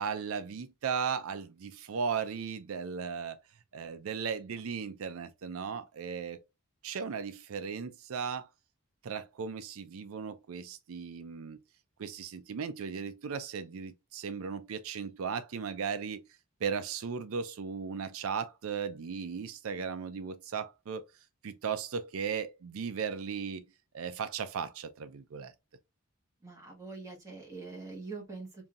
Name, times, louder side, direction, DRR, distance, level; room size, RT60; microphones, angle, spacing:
voice 1, 0.0-3.4 3.7-6.4 6.8-8.5 9.0-11.6 12.0-16.2 16.6-21.0 21.4-23.6 23.9-25.5, right 6 dB, 80° right, 0.4 m, -36 dB
voice 2, 26.4-28.7, right 3 dB, 15° right, 1.4 m, -44 dB
5.3 x 2.7 x 2.4 m
head